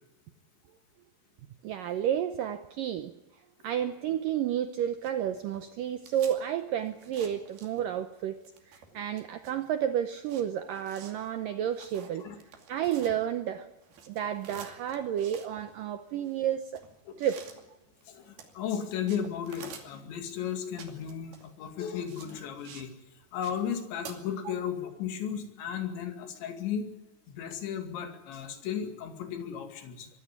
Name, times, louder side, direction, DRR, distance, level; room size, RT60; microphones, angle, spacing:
voice 1, 1.6-3.1 3.6-8.4 8.7-12.2 12.7-13.7 14.1-16.8 17.2-17.4 24.5-24.6, right 10 dB, 85° right, 9 dB, 1.9 m, -31 dB
sound 1, 4.8-8.1 8.4-13.5 13.8-22.9 23.2-24.1, right 6 dB, 60° right, 4.3 m, -50 dB
voice 2, 18.1-22.9 23.3-26.9 27.3-30.1, left 8 dB, 80° left, 5 dB, 4.6 m, -35 dB
23.5 x 15.0 x 9.8 m, 1.0 s
omnidirectional pair, 5.1 m